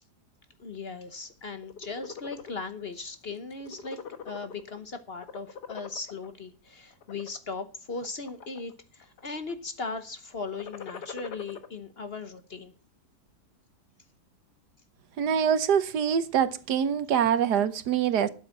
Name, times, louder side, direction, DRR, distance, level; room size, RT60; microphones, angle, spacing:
voice 1, 0.6-12.7, left 4 dB, 45° left, 1.1 m, -38 dB
sound 1, 1.5-2.5 3.0-3.2 3.5-4.8 5.1-6.3 6.9-7.4 8.0-8.7 9.0-9.5 10.4-11.7, left 6 dB, 80° left, 1.7 m, -42 dB
voice 2, 15.2-18.3, right 8 dB, 75° right, 1.5 m, -24 dB
12.0 x 8.1 x 5.8 m
omnidirectional pair, 1.8 m